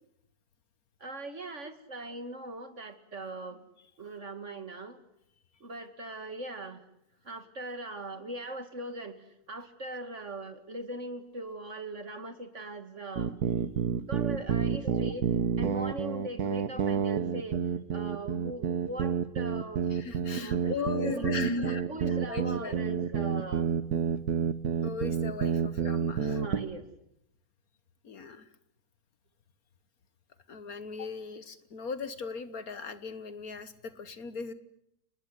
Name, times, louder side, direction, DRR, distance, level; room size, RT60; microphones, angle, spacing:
voice 1, 1.0-3.6 4.0-5.0 5.6-6.8 7.2-13.4 14.1-17.6 17.9-19.9 20.2-23.7 25.3-25.9 26.2-26.8, right 1 dB, 45° right, 8 dB, 2.4 m, -40 dB
sound 1, 13.2-26.7, right 7 dB, 65° right, 1.7 m, -29 dB
voice 2, 19.9-21.8 22.3-22.8 24.8-26.4 28.0-28.5 30.5-34.5, left 5 dB, 60° left, 12 dB, 1.7 m, -38 dB
30.0 x 20.0 x 8.2 m, 0.76 s
omnidirectional pair, 1.9 m